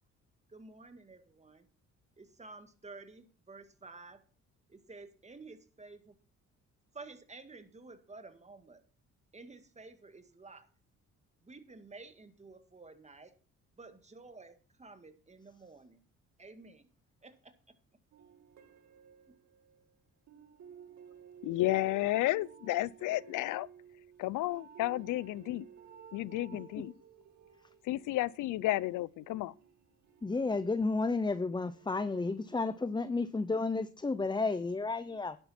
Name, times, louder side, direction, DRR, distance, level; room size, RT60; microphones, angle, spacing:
voice 1, 0.5-1.7 2.2-4.2 4.7-6.2 6.9-8.8 9.3-10.7 11.4-13.3 13.8-14.5 14.8-16.0 16.4-16.9 17.2-17.8, right 3 dB, 20° right, 1.9 m, -52 dB
sound 1, 18.1-19.8 20.3-31.1 31.7-32.7, right 8 dB, 70° right, 2.8 m, -55 dB
voice 2, 21.4-23.7 24.2-25.7 26.1-26.9 27.8-29.5, left 16 dB, 85° left, 0.6 m, -32 dB
voice 3, 30.2-35.4, left 3 dB, 15° left, 0.7 m, -32 dB
11.0 x 9.9 x 4.3 m
cardioid pair, 90°, 30 cm